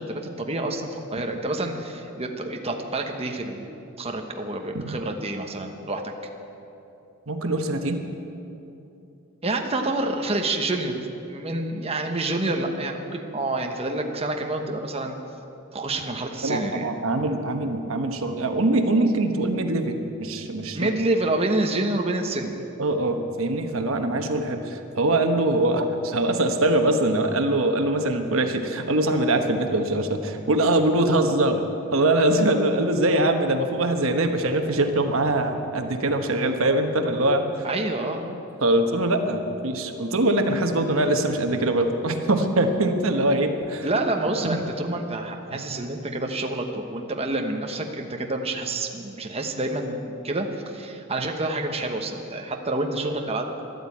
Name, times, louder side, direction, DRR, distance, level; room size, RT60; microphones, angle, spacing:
voice 1, 0.0-6.0 9.4-15.2 15.7-16.9 20.7-22.5 37.6-38.4 43.8-53.5, right 2 dB, 30° right, 3 dB, 1.1 m, -28 dB
voice 2, 7.3-8.0 16.4-21.0 22.8-31.6 31.9-37.5 38.6-43.9 44.4-44.6 45.5-45.6, right 1 dB, 70° right, 5 dB, 1.2 m, -23 dB
13.5 x 12.0 x 8.5 m, 2.9 s
head